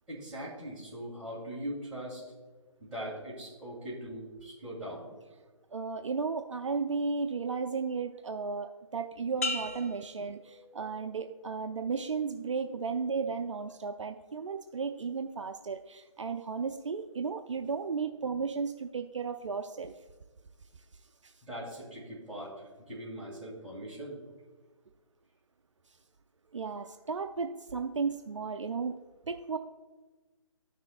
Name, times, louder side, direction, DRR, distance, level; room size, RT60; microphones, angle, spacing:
voice 1, 0.1-2.2 2.8-5.1 21.4-22.5 22.9-24.2, equal, 5° right, -10 dB, 2.3 m, -41 dB
voice 2, 5.7-19.9 21.2-21.3 26.5-29.0 29.3-29.6, right 5 dB, 60° right, 6 dB, 0.5 m, -34 dB
sound 1, 9.4-11.2 11.7-12.1, left 3 dB, 25° left, 0.4 m, -38 dB
13.5 x 6.2 x 2.5 m, 1.3 s
figure-of-eight pair, 150°, 17 cm